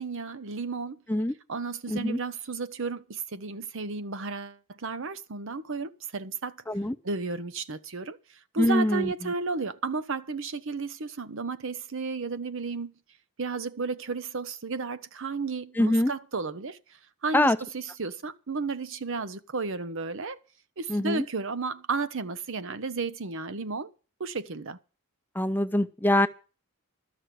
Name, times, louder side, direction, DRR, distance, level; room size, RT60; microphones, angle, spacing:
voice 1, 0.0-1.0 1.5-6.6 7.0-12.9 13.4-16.8 17.2-20.4 20.8-23.9 24.2-24.8, right 4 dB, 65° right, 0.9 m, -33 dB
voice 2, 1.9-2.2 6.7-7.0 8.6-9.1 15.8-16.1 17.3-17.6 20.9-21.2 25.4-26.3, left 1 dB, 10° left, 0.5 m, -24 dB
12.5 x 6.3 x 9.3 m
head